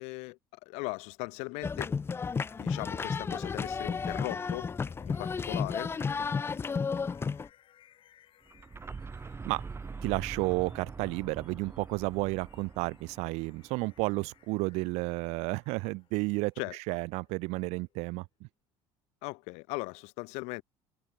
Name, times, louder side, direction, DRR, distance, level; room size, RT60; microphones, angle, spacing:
voice 1, 0.0-2.0 2.6-4.7 5.1-5.9 16.6-16.8 19.2-20.6, left 28 dB, 80° left, 0.5 m, -38 dB
sound 1, 1.6-7.5, left 5 dB, 20° left, 0.6 m, -32 dB
sound 2, 2.3-18.1, left 11 dB, 50° left, 7.3 m, -61 dB
sound 3, 8.5-14.3, right 4 dB, 20° right, 3.6 m, -44 dB
voice 2, 10.0-18.5, right 25 dB, 75° right, 0.8 m, -32 dB
cardioid pair, 115°, 11 cm